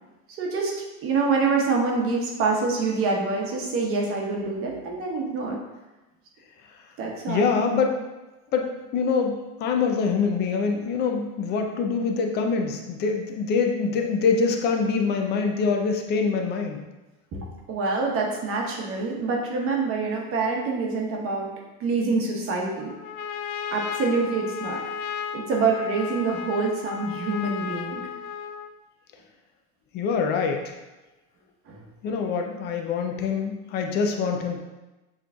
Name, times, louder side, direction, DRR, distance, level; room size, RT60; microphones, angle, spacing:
voice 1, 0.4-0.7 1.0-5.6 7.0-7.5 17.3-21.5 21.8-22.9 23.7-24.8 25.3-28.0 31.7-32.2, right 4 dB, 35° right, -1 dB, 1.0 m, -26 dB
voice 2, 7.3-8.0 8.5-16.8 29.9-30.8 32.0-34.6, left 5 dB, 25° left, 3 dB, 0.4 m, -25 dB
Trumpet, 22.8-28.8, left 7 dB, 90° left, 0.5 m, -34 dB
7.4 x 3.1 x 2.3 m, 1.1 s
supercardioid pair, 135°, 41 cm